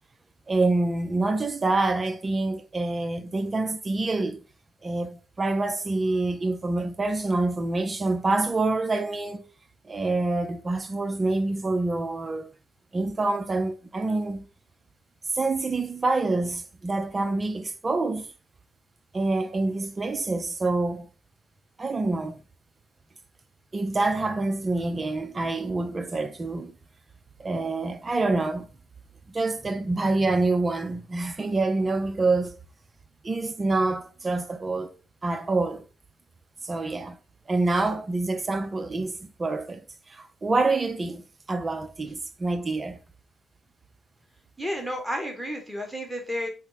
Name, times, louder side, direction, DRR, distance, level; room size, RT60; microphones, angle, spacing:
voice 1, 0.5-4.4 4.8-9.5 9.8-12.5 12.9-14.5 15.3-18.3 19.1-21.1 21.8-22.4 23.7-26.8 27.4-28.7 29.3-32.6 33.2-34.9 35.2-35.9 36.6-37.2 37.5-43.0, right 2 dB, 35° right, 0.5 m, -26 dB
voice 2, 44.6-46.5, equal, 5° right, 1.3 m, -31 dB
3.6 x 2.1 x 3.9 m
hypercardioid pair, 50°, 0 cm